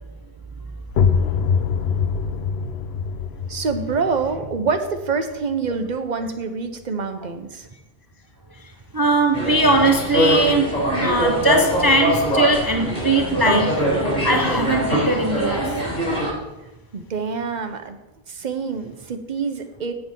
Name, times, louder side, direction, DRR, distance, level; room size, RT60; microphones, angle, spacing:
sound 1, 0.9-6.4, left 6 dB, 80° left, 0.9 m, -25 dB
voice 1, 3.5-7.7 16.9-18.0 18.3-19.9, right 5 dB, 50° right, 0.9 m, -26 dB
voice 2, 8.6-13.9 14.2-15.8, right 2 dB, 25° right, 0.5 m, -20 dB
sound 2, 9.3-16.3, equal, 45° left, 3.7 m, -22 dB
8.2 x 7.8 x 5.3 m
omnidirectional pair, 1.0 m